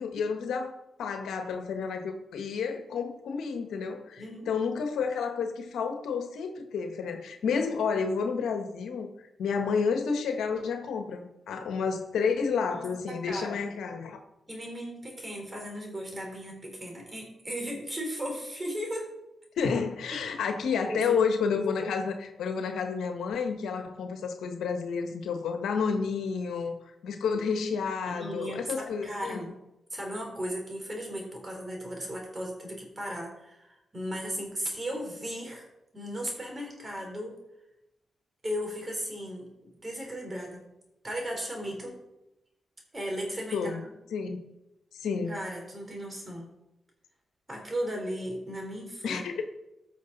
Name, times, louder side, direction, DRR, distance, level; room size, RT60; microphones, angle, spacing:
voice 1, 0.0-9.1 9.4-14.2 19.6-26.8 27.0-29.5 43.5-43.8 44.1-44.4 45.0-45.4 49.0-49.4, left 5 dB, 85° left, 5 dB, 1.3 m, -30 dB
voice 2, 4.2-4.5 12.7-13.7 14.5-19.1 20.9-21.2 28.1-29.6 29.9-33.7 33.9-35.7 35.9-37.4 38.4-40.7 41.0-42.0 42.9-43.9 45.3-46.5 47.5-49.4, equal, 30° right, 1 dB, 4.0 m, -36 dB
14.5 x 6.1 x 4.1 m, 0.92 s
cardioid pair, 60°, 0 cm